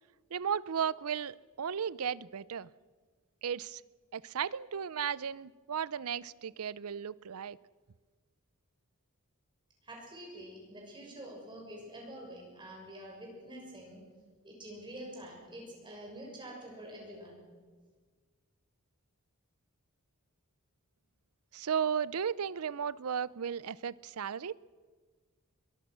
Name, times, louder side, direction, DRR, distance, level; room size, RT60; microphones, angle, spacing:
voice 1, 0.3-2.7 3.4-3.8 4.1-7.6 21.5-24.5, right 7 dB, 80° right, 20 dB, 0.5 m, -35 dB
voice 2, 9.8-14.0 14.4-17.4, right 1 dB, 20° right, 0 dB, 6.5 m, -47 dB
23.0 x 23.0 x 6.3 m, 1.5 s
head